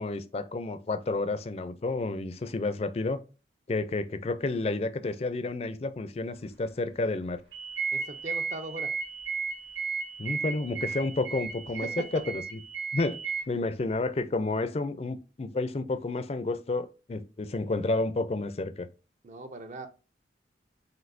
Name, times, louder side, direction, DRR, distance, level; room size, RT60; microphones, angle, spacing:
voice 1, 0.0-3.2 3.7-7.4 10.2-11.9 12.1-12.6 12.9-18.9, left 2 dB, 35° left, 0.4 m, -30 dB
sound 1, 7.5-13.4, right 5 dB, 85° right, 1.3 m, -34 dB
voice 2, 7.9-8.9 11.8-12.2 19.2-19.9, right 1 dB, 40° right, 0.6 m, -39 dB
7.5 x 2.7 x 2.6 m
head